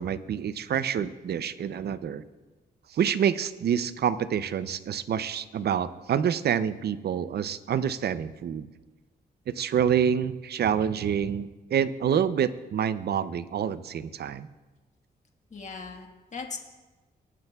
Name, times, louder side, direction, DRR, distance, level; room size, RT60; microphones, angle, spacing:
voice 1, 0.0-2.2 2.9-8.7 9.5-14.5, right 8 dB, 70° right, 14 dB, 0.5 m, -27 dB
voice 2, 15.5-16.6, left 4 dB, 45° left, 2 dB, 1.5 m, -38 dB
19.5 x 10.5 x 2.3 m, 1.2 s
cardioid pair, 85°, 18 cm